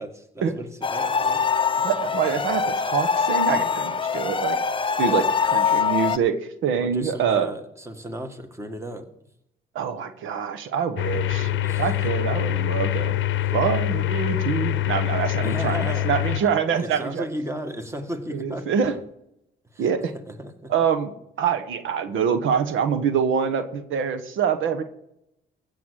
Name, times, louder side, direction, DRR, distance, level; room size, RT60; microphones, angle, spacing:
voice 1, 0.0-1.4 5.0-5.2 6.8-9.1 11.6-11.9 12.6-12.7 13.4-13.5 15.4-16.5 16.8-19.0 19.7-20.7, equal, 15° right, 7 dB, 1.8 m, -35 dB
sound 1, 0.8-6.2, left 6 dB, 25° left, 0.6 m, -23 dB
voice 2, 1.8-4.6 5.0-5.2 5.5-6.3 6.6-7.5 9.7-11.5 11.8-13.1 13.5-17.2 18.3-18.9 19.8-20.1 20.7-21.1 21.4-24.8, right 7 dB, 80° right, 8 dB, 1.2 m, -25 dB
sound 2, 11.0-16.4, left 13 dB, 70° left, 0.7 m, -25 dB
15.5 x 7.0 x 6.4 m, 0.79 s
cardioid pair, 90°, 20 cm